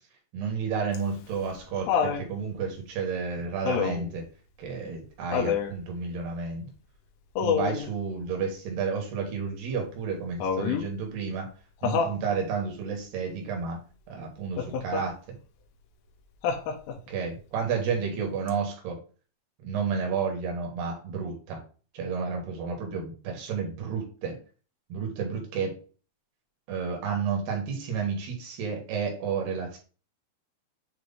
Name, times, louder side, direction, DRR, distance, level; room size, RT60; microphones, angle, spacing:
voice 1, 0.3-4.3 4.6-6.7 7.4-11.5 11.8-13.8 14.1-15.4 17.1-19.0 19.6-21.6 21.9-24.4 24.9-25.8 26.7-29.8, right 5 dB, 65° right, 1 dB, 3.3 m, -31 dB
Laughter, 0.9-2.3 3.7-4.1 5.3-5.8 7.4-7.9 10.4-10.9 11.8-12.2 14.6-15.1 16.4-17.1 18.5-18.6, left 7 dB, 85° left, 3.4 m, -27 dB
8.2 x 3.2 x 3.9 m, 0.37 s
omnidirectional pair, 5.5 m